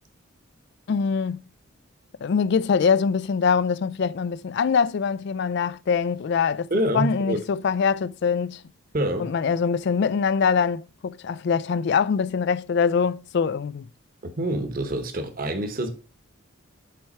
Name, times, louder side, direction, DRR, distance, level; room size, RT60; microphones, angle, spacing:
voice 1, 0.9-1.4 2.2-8.6 9.2-13.8, left 6 dB, 55° left, 0.3 m, -23 dB
voice 2, 6.7-7.4 8.9-9.3 14.4-15.9, right 1 dB, 45° right, 1.1 m, -26 dB
7.7 x 4.7 x 4.3 m
head